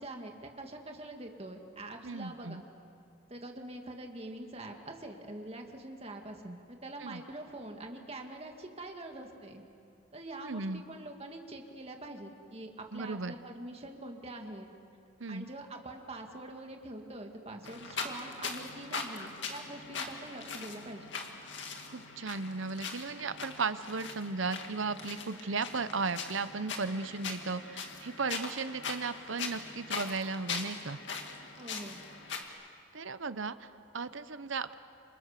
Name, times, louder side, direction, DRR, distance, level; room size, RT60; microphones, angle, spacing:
voice 1, 0.0-2.6 3.3-9.6 10.1-14.7 15.3-21.0 31.6-32.0, right 1 dB, 30° right, 3 dB, 2.2 m, -44 dB
voice 2, 2.0-2.6 7.0-7.2 10.4-10.8 12.9-13.3 15.2-15.5 21.9-31.0 32.9-34.8, right 4 dB, 70° right, 12 dB, 0.9 m, -36 dB
sound 1, 17.6-32.4, left 4 dB, 60° left, 2.3 m, -41 dB
28.0 x 27.0 x 6.8 m, 2.5 s
head